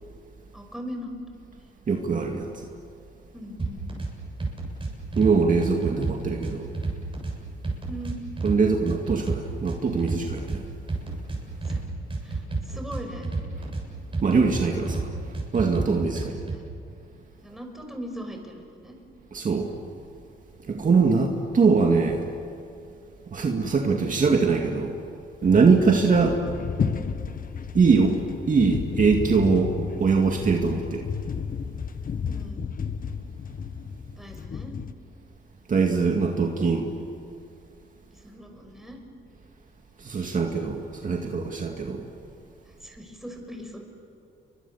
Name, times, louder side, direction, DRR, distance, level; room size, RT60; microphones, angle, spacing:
voice 1, 0.5-1.1 3.3-3.9 7.9-8.2 11.6-11.8 12.2-13.3 16.3-16.6 17.4-19.0 20.7-21.3 26.0-26.1 32.2-32.6 34.2-34.7 38.1-39.0 42.7-43.8, equal, ahead, 2 dB, 6.1 m, -40 dB
voice 2, 1.9-2.5 5.2-6.7 8.4-10.7 14.2-15.1 15.5-16.4 19.3-19.7 20.7-22.2 23.3-25.0 25.4-26.4 27.7-28.2 28.5-29.7 30.0-31.1 35.7-36.9 40.0-42.1, right 4 dB, 40° right, 2 dB, 2.3 m, -22 dB
sound 1, 3.6-4.1 4.4-5.3 5.6-7.3 7.6-8.6 8.9-10.6 10.9-11.8 12.1-13.8 14.1-15.1 15.3-16.6, right 3 dB, 25° right, 7.6 m, -30 dB
sound 2, 25.4-34.9, left 6 dB, 45° left, 1.4 m, -32 dB
29.5 x 23.5 x 7.2 m, 2.5 s
cardioid pair, 90°, 20 cm